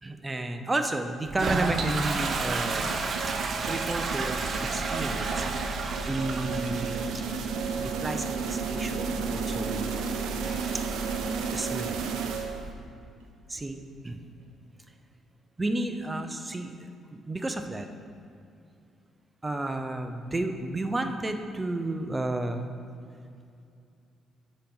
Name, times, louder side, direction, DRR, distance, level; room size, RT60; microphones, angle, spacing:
voice 1, 0.0-3.2 3.6-4.4 4.7-5.7 6.0-7.0 7.8-10.0 10.4-10.9 11.5-12.0 13.5-13.8 14.0-14.2 15.6-17.9 19.4-22.7, right 2 dB, 20° right, 6 dB, 0.8 m, -32 dB
Toilet flush, 1.3-12.7, right 3 dB, 50° right, 0.8 m, -33 dB
sound 1, 2.2-12.9, right 5 dB, 90° right, 0.7 m, -33 dB
7.3 x 5.4 x 7.2 m, 2.5 s
cardioid pair, 90°, 0 cm